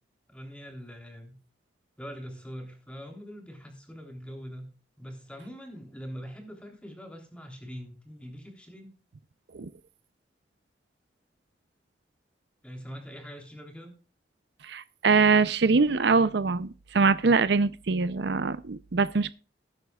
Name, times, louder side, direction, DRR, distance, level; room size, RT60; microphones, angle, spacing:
voice 1, 0.3-1.4 2.0-4.7 5.0-8.9 12.6-13.9, equal, 5° left, 3.3 m, -43 dB
voice 2, 14.6-19.3, right 4 dB, 70° right, 0.6 m, -23 dB
19.5 x 9.1 x 2.4 m
head